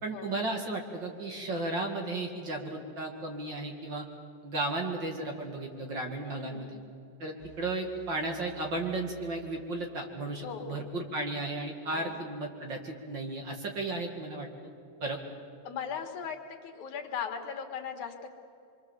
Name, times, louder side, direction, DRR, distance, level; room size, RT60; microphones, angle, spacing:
voice 1, 0.0-4.1 4.4-6.7 7.2-14.5 15.0-15.2, right 2 dB, 40° right, 2 dB, 2.5 m, -34 dB
voice 2, 6.2-6.8 10.4-10.8 11.9-12.1 15.6-18.3, left 7 dB, 80° left, 4 dB, 3.1 m, -38 dB
sound 1, 7.4-10.3, right 12 dB, 90° right, 5.8 m, -55 dB
25.5 x 24.0 x 7.4 m, 2.7 s
omnidirectional pair, 3.4 m